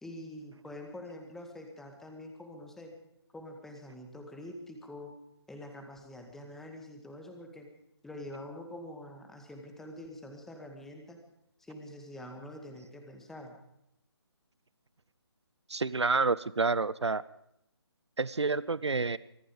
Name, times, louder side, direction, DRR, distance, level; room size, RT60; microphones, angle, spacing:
voice 1, 0.0-2.9 3.3-5.1 5.5-7.7 8.0-11.2 11.6-13.6, left 1 dB, 5° left, 3 dB, 1.8 m, -45 dB
voice 2, 15.7-17.2 18.2-19.2, right 4 dB, 85° right, 19 dB, 0.7 m, -28 dB
24.5 x 11.0 x 5.2 m, 0.79 s
figure-of-eight pair, 150°, 14 cm